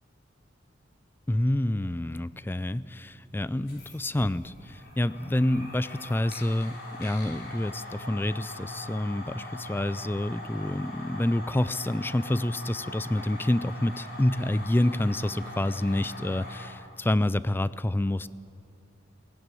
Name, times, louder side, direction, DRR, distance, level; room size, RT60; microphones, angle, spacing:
voice 1, 1.3-18.3, left 1 dB, 10° left, 17 dB, 0.4 m, -28 dB
sound 1, 3.5-16.7, left 1 dB, 55° left, 4.5 m, -41 dB
19.0 x 16.0 x 9.1 m, 2.5 s
head